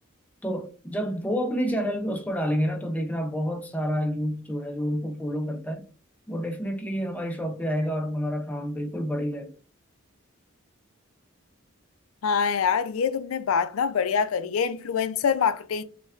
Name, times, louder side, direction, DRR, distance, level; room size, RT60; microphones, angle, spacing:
voice 1, 0.4-5.9 6.3-9.5, equal, 5° left, 0.3 m, -29 dB
voice 2, 12.2-15.8, left 6 dB, 85° left, 0.4 m, -25 dB
5.4 x 2.2 x 2.4 m
head